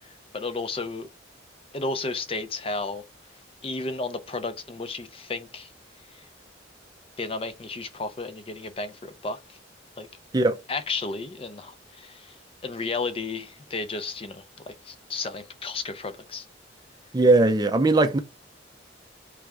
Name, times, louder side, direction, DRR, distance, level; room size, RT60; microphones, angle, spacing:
voice 1, 0.0-1.1 1.7-3.0 3.6-5.7 6.1-6.3 7.2-9.6 10.0-10.1 10.7-16.5, left 3 dB, 30° left, 0.5 m, -33 dB
voice 2, 17.1-18.2, right 2 dB, 20° right, 0.5 m, -19 dB
3.5 x 3.3 x 4.7 m
head